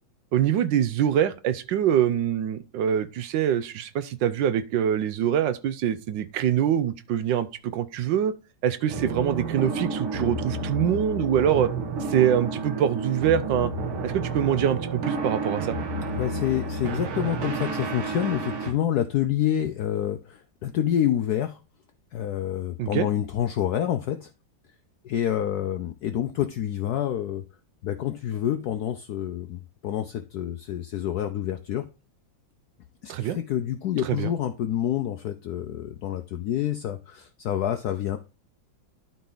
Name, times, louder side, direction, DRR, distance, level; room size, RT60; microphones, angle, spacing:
voice 1, 0.3-7.5 7.7-8.3 8.6-11.7 12.0-13.7 14.0-15.8 22.8-23.1 33.1-33.4 34.0-34.3, right 10 dB, 75° right, 1.2 m, -24 dB
sound 1, 8.9-18.7, right 3 dB, 90° right, 2.0 m, -30 dB
voice 2, 16.1-21.6 22.1-24.3 25.0-27.4 27.8-31.9 33.0-38.2, left 10 dB, 75° left, 0.8 m, -28 dB
12.0 x 4.1 x 3.9 m
omnidirectional pair, 2.2 m